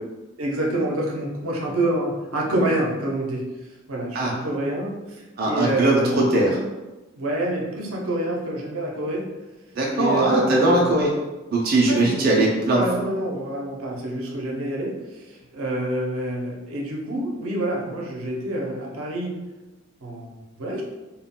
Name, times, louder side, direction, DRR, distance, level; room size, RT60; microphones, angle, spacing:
voice 1, 0.4-3.4 3.9-6.2 7.1-9.2 9.9-11.0 11.9-12.3 12.7-19.3 20.0-20.8, right 1 dB, 90° right, -2 dB, 0.6 m, -27 dB
voice 2, 5.4-6.6 9.7-11.1 11.5-12.8, right 2 dB, 45° right, -2 dB, 0.4 m, -20 dB
2.2 x 2.1 x 3.6 m, 1.1 s
head